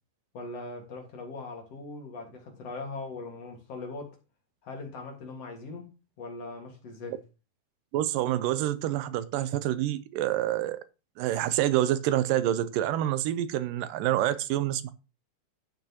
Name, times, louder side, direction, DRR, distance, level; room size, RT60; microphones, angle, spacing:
voice 1, 0.3-4.2 4.6-5.9 6.2-7.2, left 3 dB, 50° left, 2.5 m, -40 dB
voice 2, 7.9-10.8 11.2-14.9, right 13 dB, 80° right, 2.2 m, -27 dB
11.5 x 8.9 x 2.9 m
omnidirectional pair, 4.0 m